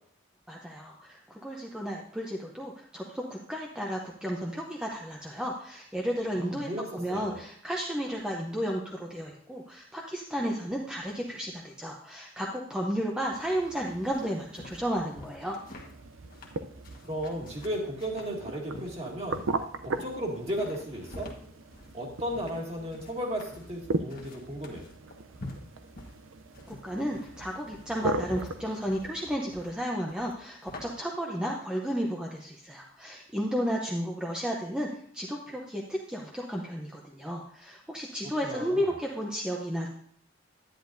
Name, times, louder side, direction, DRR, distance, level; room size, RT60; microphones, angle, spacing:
voice 1, 0.5-15.6 26.7-39.9, equal, 5° right, -2 dB, 0.7 m, -33 dB
voice 2, 6.4-7.4 17.0-19.5 19.8-21.3 21.9-24.8 38.4-38.8, equal, 30° right, -1 dB, 2.0 m, -35 dB
sound 1, 13.3-29.4, right 3 dB, 75° right, 0.6 m, -39 dB
sound 2, 14.1-30.8, left 2 dB, 45° left, 1.4 m, -48 dB
10.5 x 10.0 x 2.6 m, 0.65 s
head